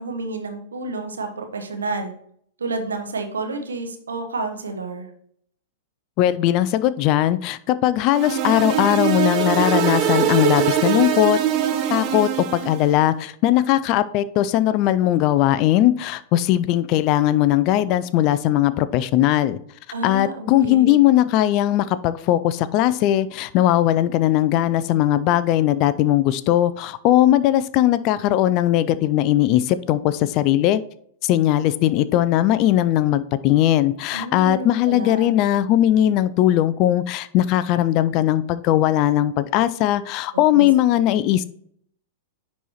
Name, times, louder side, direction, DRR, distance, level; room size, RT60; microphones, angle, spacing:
voice 1, 0.0-2.1 2.6-5.1 19.9-21.0 34.1-35.4 40.5-40.7 41.0-41.1, right 3 dB, 80° right, 5 dB, 1.1 m, -30 dB
voice 2, 6.2-11.4 11.9-19.6 20.0-30.8 31.2-41.4, left 13 dB, 45° left, 15 dB, 0.4 m, -19 dB
sound 1, 8.1-12.9, right 9 dB, 40° right, 0.8 m, -22 dB
9.9 x 4.2 x 3.0 m, 0.66 s
figure-of-eight pair, 105°, 0 cm